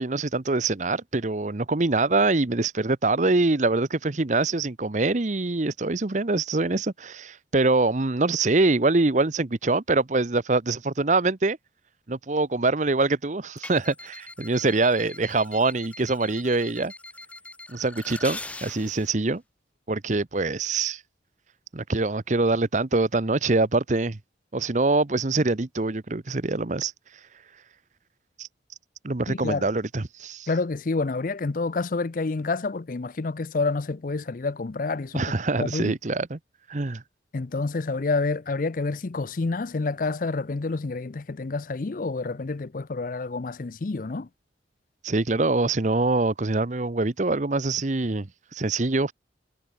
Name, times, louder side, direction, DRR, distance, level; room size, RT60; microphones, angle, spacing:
voice 1, 0.0-11.6 12.1-16.9 17.7-19.4 19.9-21.0 21.7-24.2 24.5-26.9 28.4-28.5 29.0-30.5 35.1-36.4 36.7-37.0 45.0-49.1, right 3 dB, 40° right, 0.8 m, -24 dB
sound 1, 13.6-19.1, left 2 dB, 5° left, 2.3 m, -42 dB
voice 2, 29.3-29.7 30.5-36.0 37.3-44.3, left 3 dB, 45° left, 0.5 m, -28 dB
head